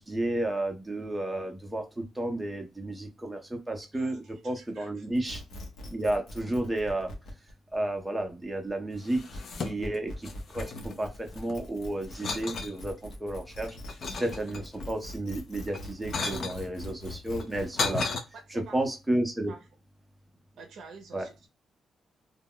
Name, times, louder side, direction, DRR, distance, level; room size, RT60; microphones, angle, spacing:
voice 1, 0.0-5.4 5.8-7.1 7.7-9.2 9.6-10.3 10.5-13.8 14.2-18.0 18.5-19.5 21.1-21.3, right 1 dB, 10° right, 3 dB, 0.6 m, -32 dB
voice 2, 3.9-5.1 18.3-18.8 19.5-19.6 20.6-21.5, right 4 dB, 70° right, 4 dB, 0.5 m, -49 dB
sound 1, 5.1-17.9, left 1 dB, 70° left, 0.8 m, -43 dB
sound 2, 9.0-10.0 10.2-11.6 12.1-12.8 13.3-14.9 15.6-16.6 17.3-18.2, left 4 dB, 50° left, 0.4 m, -34 dB
2.2 x 2.0 x 3.7 m, 0.25 s
cardioid pair, 155°, 0 cm